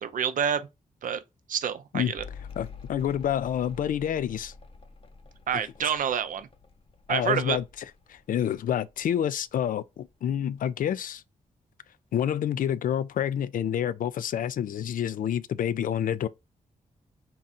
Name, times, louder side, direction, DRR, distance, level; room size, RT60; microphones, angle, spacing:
voice 1, 0.0-0.7 1.0-1.2 1.5-2.2 5.5-6.5 7.1-7.6, right 8 dB, 65° right, 0.5 m, -28 dB
Mechanical fan, 2.2-9.0 9.3-10.1, left 4 dB, 40° left, 0.7 m, -47 dB
voice 2, 2.6-4.5 5.5-5.6 7.1-7.6 8.1-11.2 12.1-16.3, left 9 dB, 70° left, 0.4 m, -28 dB
3.9 x 2.4 x 4.1 m
cardioid pair, 60°, 15 cm